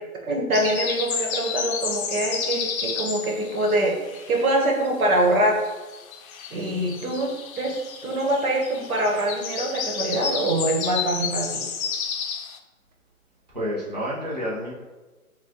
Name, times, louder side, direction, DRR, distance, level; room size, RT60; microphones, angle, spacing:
voice 1, 0.3-5.6 6.5-7.7 8.0-11.6, right 1 dB, 70° right, 0 dB, 1.0 m, -24 dB
sound 1, 0.5-4.9 5.1-12.6, left 6 dB, 70° left, 0.5 m, -31 dB
voice 2, 13.5-14.7, equal, 30° right, -7 dB, 0.4 m, -29 dB
3.6 x 2.2 x 2.7 m, 1.2 s
hypercardioid pair, 170°, 44 cm